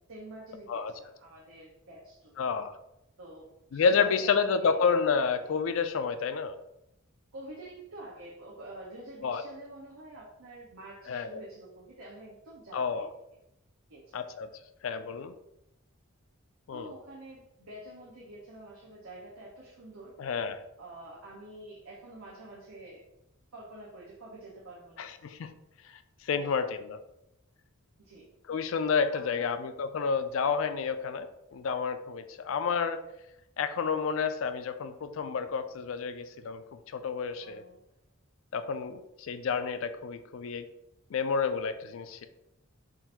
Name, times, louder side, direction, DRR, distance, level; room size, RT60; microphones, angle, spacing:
voice 1, 0.1-2.3 3.2-4.8 7.3-13.1 13.9-14.3 16.7-20.2 20.8-23.0 23.5-25.1 26.3-26.5 28.0-28.3 29.1-29.5 37.4-37.8, right 1 dB, 85° right, -4 dB, 0.9 m, -47 dB
voice 2, 2.4-2.7 3.7-6.6 9.2-9.4 11.1-11.4 12.7-13.1 14.1-14.5 14.8-15.3 16.7-16.9 20.2-20.6 25.0-25.5 25.9-27.0 28.5-33.0 33.6-37.6 38.5-40.7 41.1-42.3, left 5 dB, 70° left, 10 dB, 0.4 m, -30 dB
3.8 x 2.6 x 4.2 m, 0.85 s
head